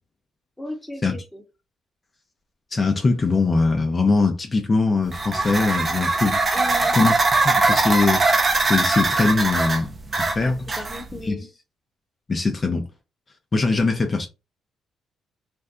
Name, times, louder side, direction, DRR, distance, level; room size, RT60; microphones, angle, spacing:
voice 1, 0.6-1.4 6.5-6.9 10.4-11.5, left 1 dB, 10° left, 0.9 m, -36 dB
voice 2, 2.7-6.4 6.9-7.2 7.4-8.2 8.6-10.6 11.2-11.4 12.3-12.9 13.5-14.3, left 3 dB, 30° left, 0.6 m, -21 dB
sound 1, 5.1-11.2, right 3 dB, 35° right, 0.6 m, -21 dB
2.6 x 2.2 x 3.6 m
cardioid pair, 90°, 0 cm